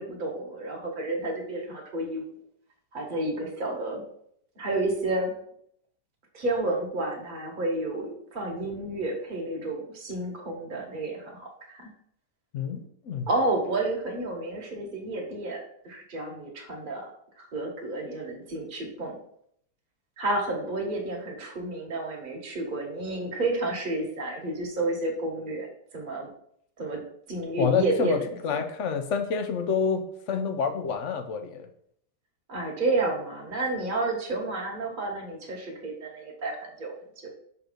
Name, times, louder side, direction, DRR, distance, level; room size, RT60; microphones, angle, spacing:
voice 1, 0.0-2.3 2.9-4.0 4.6-5.4 6.3-11.9 13.3-19.2 20.2-25.7 25.9-26.3 26.8-28.6 32.5-37.3, right 2 dB, 30° right, 0 dB, 1.3 m, -31 dB
voice 2, 12.5-13.3 27.6-31.7, left 6 dB, 60° left, 6 dB, 0.8 m, -28 dB
6.1 x 3.7 x 5.1 m, 0.68 s
omnidirectional pair, 1.8 m